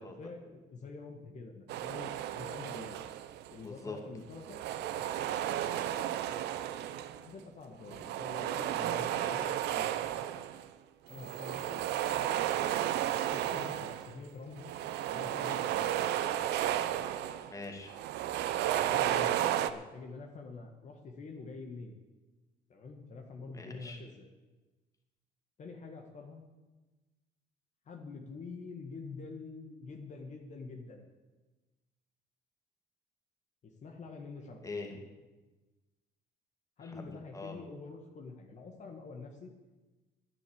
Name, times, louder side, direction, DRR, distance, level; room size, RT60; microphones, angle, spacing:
voice 1, 0.2-3.0 3.5-5.2 7.2-9.9 11.1-11.9 13.3-14.7 15.1-15.9 18.6-22.0 22.7-24.3 25.6-26.4 27.9-31.1 33.6-34.6 36.8-39.5, left 4 dB, 45° left, 2 dB, 1.8 m, -46 dB
sound 1, 1.7-3.5 4.3-7.3 7.9-10.7 11.1-14.2 14.5-17.5 17.9-19.7, right 11 dB, 80° right, 0.8 m, -33 dB
voice 2, 3.6-4.0 9.1-9.3 17.5-18.0 23.5-24.0 34.6-35.0 36.8-37.6, left 3 dB, 20° left, 3 dB, 2.5 m, -43 dB
sound 2, 14.2-16.1, right 6 dB, 30° right, 1.7 m, -56 dB
10.5 x 10.0 x 8.7 m, 1.2 s
cardioid pair, 110°, 17 cm